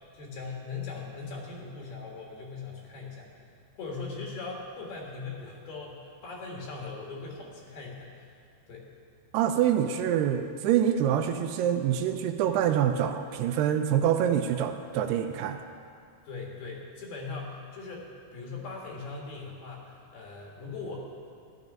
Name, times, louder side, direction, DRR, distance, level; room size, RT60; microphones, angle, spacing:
voice 1, 0.1-3.4 3.8-8.2 8.7-8.9 16.3-21.0, left 4 dB, 65° left, -1 dB, 3.4 m, -40 dB
voice 2, 9.3-15.6, right 9 dB, 80° right, 7 dB, 2.5 m, -26 dB
14.0 x 11.0 x 5.3 m, 2.2 s
omnidirectional pair, 5.1 m